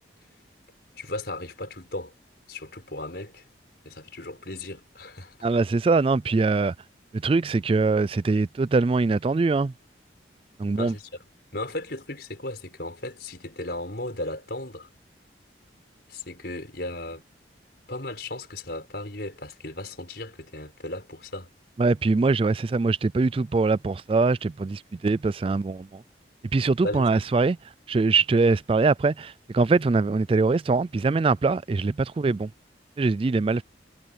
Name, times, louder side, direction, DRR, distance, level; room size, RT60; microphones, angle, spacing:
voice 1, 1.0-2.1 2.5-3.4 3.8-5.5 10.8-11.1 11.5-14.9 16.1-17.2 17.9-21.5 26.8-27.1, left 1 dB, 55° left, 6.2 m, -36 dB
voice 2, 5.4-6.7 7.2-9.7 10.6-10.9 21.8-26.0 26.5-27.6 27.9-32.5 33.0-33.6, right 3 dB, 30° right, 0.3 m, -23 dB
head